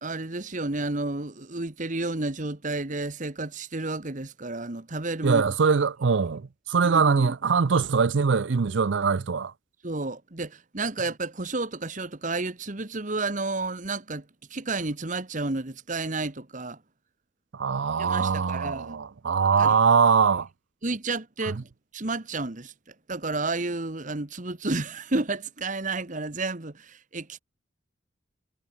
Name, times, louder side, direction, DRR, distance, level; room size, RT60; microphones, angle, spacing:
voice 1, 0.0-5.4 6.8-7.3 9.8-14.2 14.5-16.8 18.0-19.0 19.6-19.7 20.8-22.7 23.1-27.4, right 3 dB, 40° right, 1.4 m, -31 dB
voice 2, 5.2-9.5 17.5-20.5, right 5 dB, 65° right, 0.5 m, -22 dB
head